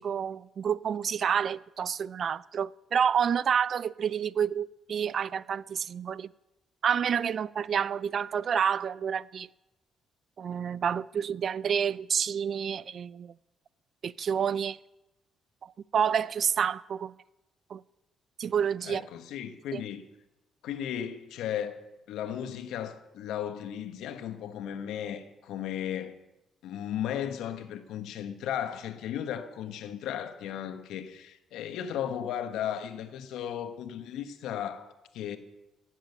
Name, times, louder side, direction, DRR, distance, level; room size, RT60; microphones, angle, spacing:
voice 1, 0.0-6.3 6.8-9.5 10.4-13.3 14.0-14.8 15.6-17.1 17.7-17.8 18.4-19.0 19.7-19.8, right 7 dB, 55° right, 0.4 m, -29 dB
voice 2, 18.8-20.0 20.6-21.8 22.1-26.1 26.6-35.4, left 10 dB, 85° left, 1.1 m, -35 dB
15.5 x 7.5 x 8.0 m
cardioid pair, 90°, 0 cm